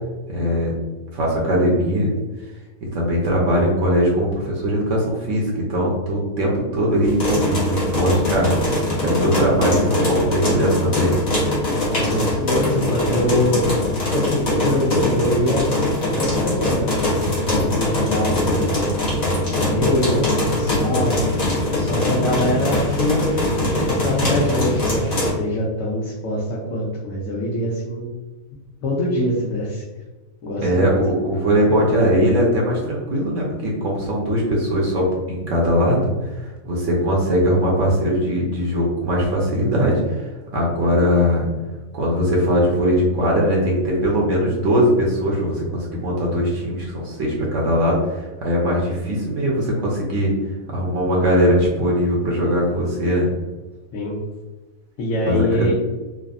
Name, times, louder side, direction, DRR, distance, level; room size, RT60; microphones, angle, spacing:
voice 1, 0.3-0.7 1.1-2.1 2.8-11.2 22.0-22.3 30.6-36.1 36.4-40.3 40.5-41.5 41.9-50.3 50.7-53.3 55.3-55.7, equal, 70° right, -3 dB, 1.0 m, -20 dB
sound 1, 7.0-25.3, left 1 dB, 40° left, 0.7 m, -22 dB
voice 2, 11.8-13.7 14.1-15.7 16.0-18.9 19.5-21.2 21.7-28.1 28.8-29.8 30.4-30.9 53.9-54.2 55.0-55.7, left 1 dB, 75° left, -5 dB, 1.0 m, -24 dB
3.3 x 2.0 x 2.4 m, 1.2 s
omnidirectional pair, 1.4 m